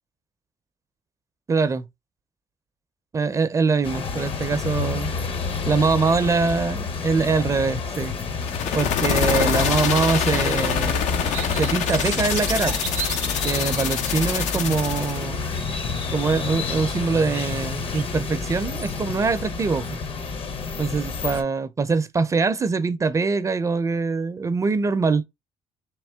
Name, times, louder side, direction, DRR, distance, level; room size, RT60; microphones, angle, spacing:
voice 1, 1.5-1.9 3.1-5.1 5.7-8.1 8.7-11.1 11.5-12.8 13.4-15.4 16.1-20.0 20.8-25.2, right 4 dB, 25° right, 0.4 m, -23 dB
sound 1, 3.8-21.4, left 5 dB, 50° left, 0.7 m, -29 dB
sound 2, 8.4-15.2, left 8 dB, 90° left, 0.6 m, -26 dB
sound 3, 8.7-18.1, right 12 dB, 85° right, 0.5 m, -40 dB
3.6 x 2.9 x 3.4 m
cardioid pair, 105°, 12 cm